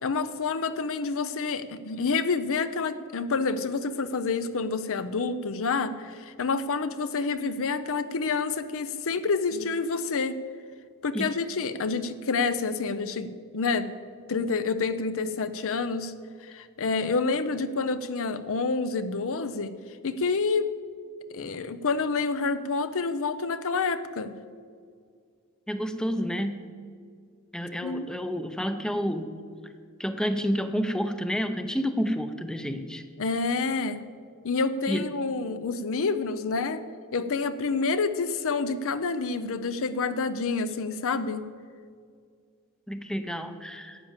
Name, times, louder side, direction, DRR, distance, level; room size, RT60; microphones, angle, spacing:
voice 1, 0.0-10.4 11.0-16.1 16.4-19.7 20.0-20.8 21.3-24.4 27.8-28.1 33.2-34.0 34.4-36.8 37.1-41.5, left 4 dB, 65° left, 12 dB, 0.6 m, -28 dB
voice 2, 25.7-26.6 27.5-29.3 30.0-33.0 34.9-35.0 42.9-44.0, equal, 5° left, 8 dB, 0.6 m, -29 dB
12.0 x 8.7 x 7.3 m, 2.1 s
head